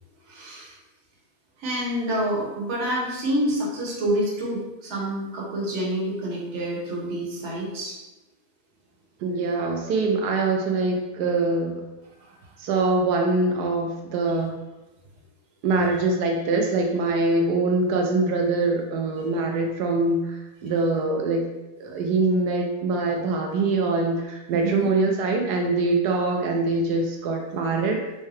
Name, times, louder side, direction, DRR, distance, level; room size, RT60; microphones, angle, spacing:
voice 1, 0.3-0.7 1.6-8.0 24.5-24.9, right 1 dB, 50° right, -3 dB, 1.1 m, -27 dB
voice 2, 9.2-11.8 12.6-14.6 15.6-21.5 21.8-28.0, right 3 dB, 90° right, 1 dB, 1.1 m, -23 dB
4.6 x 2.1 x 3.1 m, 1.0 s
omnidirectional pair, 1.7 m